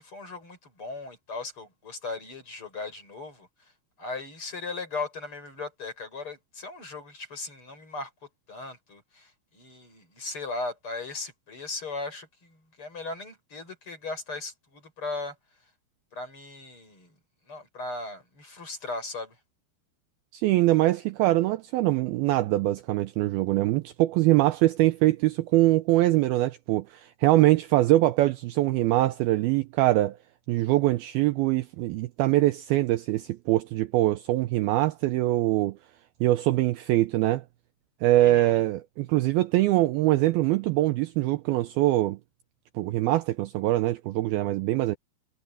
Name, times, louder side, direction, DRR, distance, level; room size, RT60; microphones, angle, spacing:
voice 1, 0.0-3.7 4.0-8.1 8.5-15.4 16.1-17.1 17.5-19.4 38.1-38.6, left 3 dB, 30° left, 6.5 m, -37 dB
voice 2, 20.3-30.2 30.5-35.8 36.2-37.4 38.0-42.2 42.8-45.0, right 16 dB, 80° right, 2.2 m, -23 dB
omnidirectional pair, 5.0 m